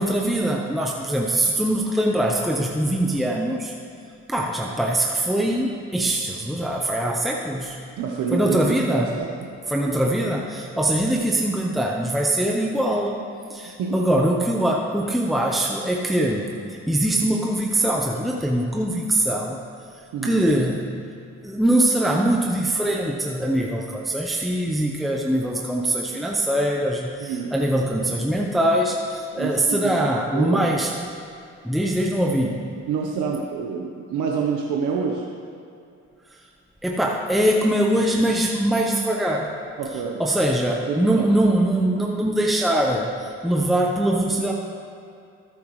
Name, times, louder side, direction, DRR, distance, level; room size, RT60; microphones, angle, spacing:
voice 1, 0.0-3.7 4.3-7.8 8.3-9.1 9.7-13.2 13.5-16.6 16.9-19.6 20.2-20.9 21.4-30.9 31.6-32.6 36.8-39.6 40.2-44.5, right 1 dB, ahead, -1 dB, 0.8 m, -22 dB
voice 2, 8.0-9.6 13.8-14.0 20.1-20.4 27.2-27.5 29.3-29.9 30.3-30.7 32.9-35.2 39.8-40.2 40.9-41.3, right 6 dB, 85° right, -1 dB, 1.0 m, -27 dB
13.5 x 9.3 x 3.2 m, 2.5 s
cardioid pair, 90°, 30 cm